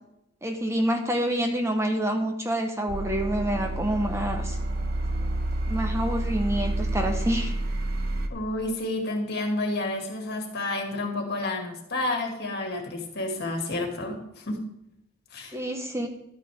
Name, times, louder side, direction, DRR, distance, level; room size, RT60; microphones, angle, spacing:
voice 1, 0.4-4.6 5.7-7.5 15.5-16.1, right 1 dB, 15° right, 5 dB, 0.8 m, -27 dB
sound 1, 2.9-8.3, right 1 dB, 50° right, 0.9 m, -29 dB
voice 2, 8.3-14.6 15.3-15.6, left 2 dB, 55° left, 2 dB, 2.1 m, -30 dB
12.0 x 9.1 x 3.5 m, 0.84 s
head